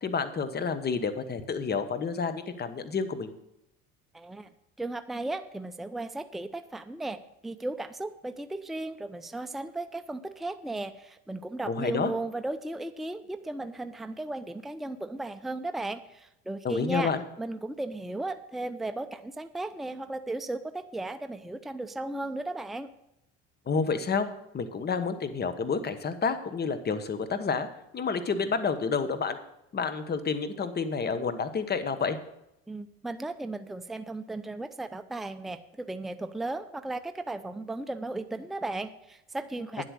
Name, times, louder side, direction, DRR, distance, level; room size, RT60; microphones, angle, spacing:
voice 1, 0.0-3.3 11.7-12.1 16.6-17.2 23.7-24.3 24.5-27.7 27.9-29.4 29.7-32.2, left 5 dB, 30° left, 11 dB, 1.2 m, -29 dB
voice 2, 4.1-4.5 4.8-17.1 17.4-22.9 32.7-39.8, right 2 dB, ahead, 9 dB, 0.6 m, -35 dB
9.9 x 8.1 x 6.4 m, 0.83 s
supercardioid pair, 95°, 32 cm